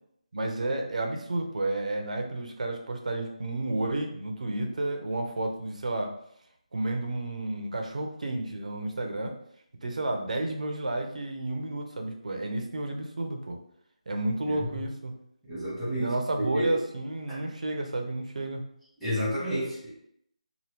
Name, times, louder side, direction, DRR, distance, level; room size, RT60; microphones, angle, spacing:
voice 1, 0.3-6.1 6.7-9.4 9.8-13.6 14.1-15.1 15.9-18.6, right 2 dB, 65° right, 3 dB, 0.7 m, -31 dB
voice 2, 15.5-16.7 17.3-17.4 19.0-19.9, equal, ahead, -12 dB, 0.9 m, -31 dB
2.9 x 2.2 x 3.3 m, 0.70 s
figure-of-eight pair, 170°, 4 cm